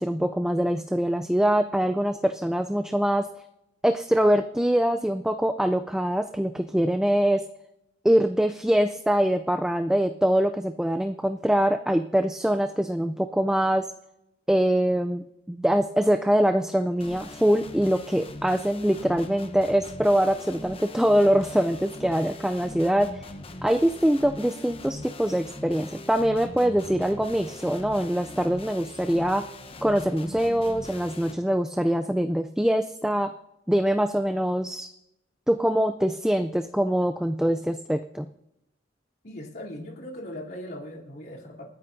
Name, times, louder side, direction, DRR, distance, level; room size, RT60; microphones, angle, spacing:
voice 1, 0.0-3.3 3.8-7.5 8.0-13.9 14.5-23.2 23.6-29.5 29.8-33.3 33.7-34.9 35.5-38.3, equal, 5° right, 8 dB, 0.4 m, -23 dB
sound 1, 17.0-31.3, left 2 dB, 30° left, 0.9 m, -41 dB
voice 2, 39.2-41.6, left 1 dB, 55° left, -4 dB, 3.3 m, -39 dB
28.0 x 9.9 x 2.7 m, 0.83 s
head